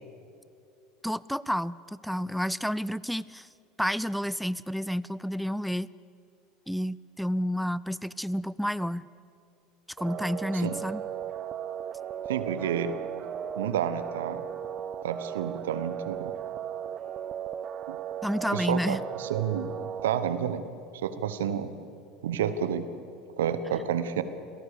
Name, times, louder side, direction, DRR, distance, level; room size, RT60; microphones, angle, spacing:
voice 1, 1.0-3.5 3.8-5.9 6.7-9.1 10.0-11.0 18.2-19.0, equal, ahead, 20 dB, 0.5 m, -30 dB
sound 1, 10.0-20.1, right 9 dB, 40° right, 0.8 m, -36 dB
voice 2, 12.3-13.0 13.6-14.4 15.0-16.3 17.9-18.0 18.5-19.7 20.0-20.6 21.0-21.7 22.2-22.8 23.4-24.2, right 8 dB, 75° right, 12 dB, 1.2 m, -30 dB
28.0 x 17.5 x 6.9 m, 2.4 s
figure-of-eight pair, 75°, 0 cm